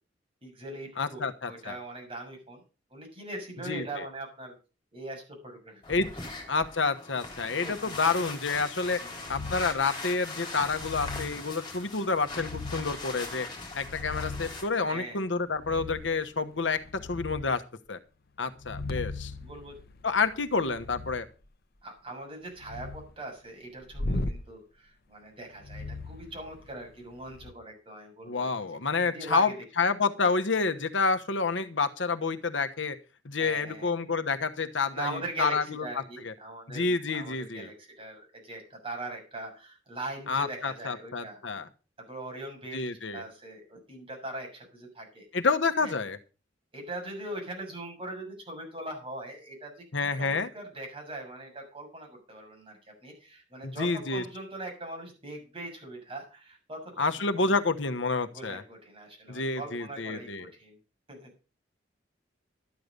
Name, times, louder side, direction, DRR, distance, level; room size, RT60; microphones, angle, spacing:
voice 1, 0.4-1.2 1.5-2.6 2.9-4.5 4.9-6.1 7.4-8.0 9.0-9.3 14.9-15.2 17.0-17.2 19.4-19.7 21.8-28.5 29.0-29.5 33.4-33.9 34.9-41.4 42.0-45.2 45.8-45.9 46.7-49.8 50.2-57.6 58.3-60.8 61.1-61.3, right 2 dB, 30° right, 1 dB, 6.8 m, -41 dB
voice 2, 1.0-1.8 3.7-4.0 5.9-6.1 6.5-9.0 9.3-13.5 13.7-17.6 17.9-18.0 18.4-19.3 20.0-21.3 28.2-29.5 29.8-33.0 33.2-35.8 36.2-36.3 36.7-37.7 40.3-41.7 42.7-43.2 45.3-46.2 49.9-50.5 53.6-54.2 57.0-58.6 59.3-60.5, left 4 dB, 80° left, 9 dB, 1.2 m, -29 dB
sound 1, 5.8-14.6, left 3 dB, 25° left, 4.3 m, -41 dB
sound 2, 9.3-9.8 10.6-11.4 12.3-13.0 13.6-14.6 15.6-16.2 16.6-17.5 18.5-21.2 22.5-23.1 23.9-24.4 25.6-26.8 27.3-27.5, left 2 dB, 55° left, 1.0 m, -38 dB
13.0 x 9.6 x 5.2 m, 0.33 s
head